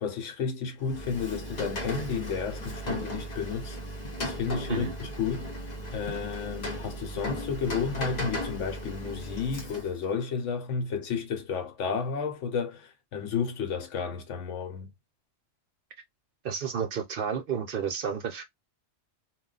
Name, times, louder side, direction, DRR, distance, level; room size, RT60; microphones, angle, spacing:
voice 1, 0.0-3.8 4.2-5.5 5.9-14.9, left 6 dB, 80° left, 1.1 m, -32 dB
Rain, 0.8-10.1, equal, 45° left, 0.7 m, -36 dB
voice 2, 16.4-18.4, right 7 dB, 60° right, 0.7 m, -31 dB
2.3 x 2.2 x 3.7 m
omnidirectional pair, 1.2 m